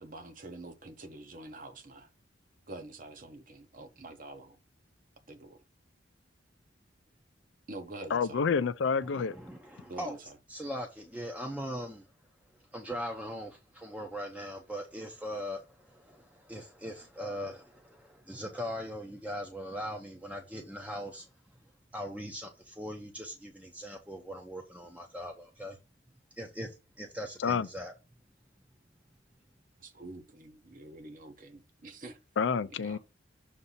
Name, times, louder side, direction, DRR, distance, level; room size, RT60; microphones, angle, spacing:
voice 1, 0.0-2.1 2.7-4.6 5.3-5.6 7.7-8.4 9.9-10.4 29.8-32.2 32.8-33.0, right 2 dB, 45° right, 1.0 m, -46 dB
voice 2, 8.1-9.4 27.4-27.7 32.4-33.0, left 6 dB, 75° left, 0.4 m, -28 dB
voice 3, 9.0-10.2 10.5-12.1 12.7-21.3 21.9-25.8 26.4-27.9, equal, 5° right, 0.6 m, -40 dB
6.6 x 2.7 x 5.5 m
head